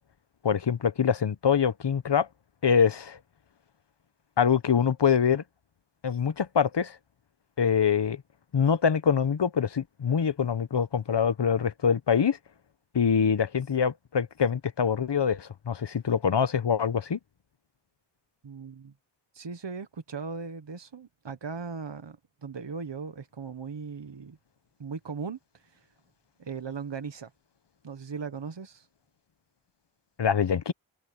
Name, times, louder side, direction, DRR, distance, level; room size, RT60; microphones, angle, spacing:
voice 1, 0.4-2.3 2.6-3.2 4.4-5.4 6.0-7.0 7.6-8.2 8.5-12.4 12.9-17.2 30.2-30.7, left 7 dB, 60° left, 0.9 m, -24 dB
voice 2, 18.4-18.9 19.3-24.4 24.8-25.9 26.4-27.3 27.8-28.9, right 5 dB, 65° right, 1.3 m, -38 dB
wide cardioid pair, 60°, 46 cm